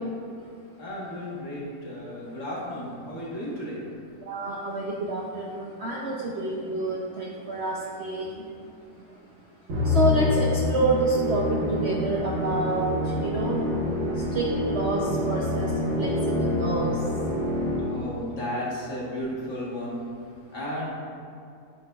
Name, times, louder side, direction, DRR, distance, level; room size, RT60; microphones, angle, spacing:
voice 1, 0.8-3.8 8.1-8.2 17.9-20.0 20.5-20.9, left 1 dB, 45° left, -6 dB, 1.7 m, -34 dB
voice 2, 4.2-8.5 9.8-13.6 14.2-17.0, right 2 dB, 75° right, -3 dB, 0.6 m, -28 dB
Musical instrument, 9.7-18.2, left 2 dB, 50° right, 1.4 m, -27 dB
8.7 x 5.7 x 2.3 m, 2.5 s
omnidirectional pair, 1.9 m